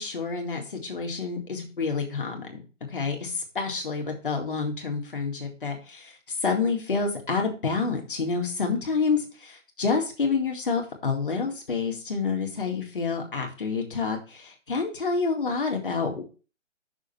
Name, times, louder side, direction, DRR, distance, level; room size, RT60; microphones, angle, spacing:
voice 1, 0.0-2.6 2.9-16.2, left 4 dB, 45° left, 2 dB, 2.0 m, -28 dB
6.3 x 5.0 x 5.5 m, 0.34 s
hypercardioid pair, 175°, 38 cm